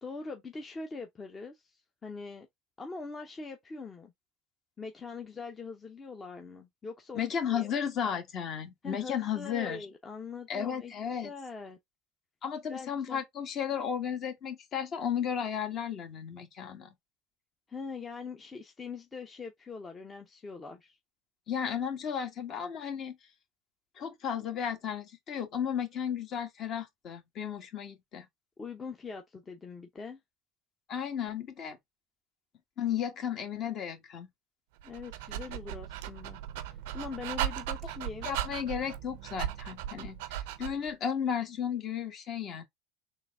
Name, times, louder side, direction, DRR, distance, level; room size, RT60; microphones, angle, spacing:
voice 1, 0.0-2.5 2.8-4.1 4.8-7.7 8.8-11.8 12.7-13.2 17.7-21.0 28.6-30.2 34.8-36.4 36.6-38.3, left 4 dB, 25° left, 0.7 m, -42 dB
voice 2, 7.1-9.8 10.5-11.3 12.4-16.9 21.5-23.2 24.0-28.2 30.9-31.8 32.8-34.3 38.2-42.6, left 8 dB, 45° left, 1.3 m, -34 dB
Dog, 34.8-40.9, right 11 dB, 75° right, 0.5 m, -37 dB
3.9 x 2.6 x 3.5 m
hypercardioid pair, 85°, 0 cm